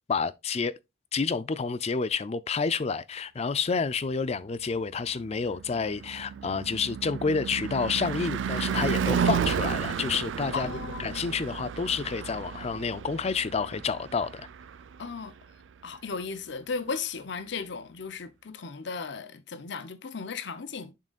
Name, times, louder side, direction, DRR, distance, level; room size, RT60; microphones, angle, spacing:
voice 1, 0.1-0.7 1.1-10.7 11.0-14.5, left 5 dB, 35° left, 0.4 m, -29 dB
Car passing by / Truck / Engine, 5.0-15.3, right 7 dB, 75° right, 0.4 m, -32 dB
voice 2, 10.5-11.2 15.0-15.3 15.8-20.9, left 5 dB, 65° left, 0.7 m, -36 dB
11.0 x 3.8 x 2.4 m
head